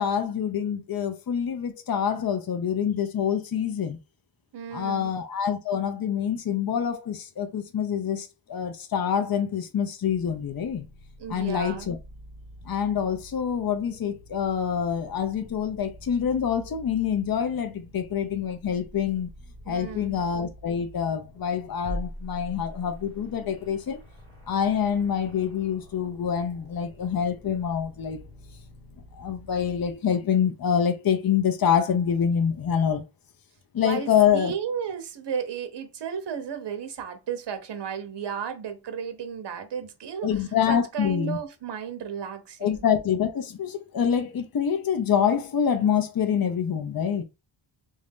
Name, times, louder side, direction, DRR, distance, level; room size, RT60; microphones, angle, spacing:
voice 1, 0.0-4.0 4.7-10.9 11.3-12.0 12.6-19.3 19.7-24.0 24.5-28.2 29.1-33.0 33.7-34.5 40.2-41.4 42.6-47.2, left 8 dB, 50° left, 0.8 m, -26 dB
voice 2, 4.5-5.1 11.2-11.9 19.7-20.2 33.8-34.1 34.3-42.8, right 7 dB, 60° right, 0.9 m, -34 dB
sound 1, 10.0-30.0, equal, 10° left, 1.5 m, -45 dB
3.6 x 2.7 x 3.5 m
wide cardioid pair, 120°, 47 cm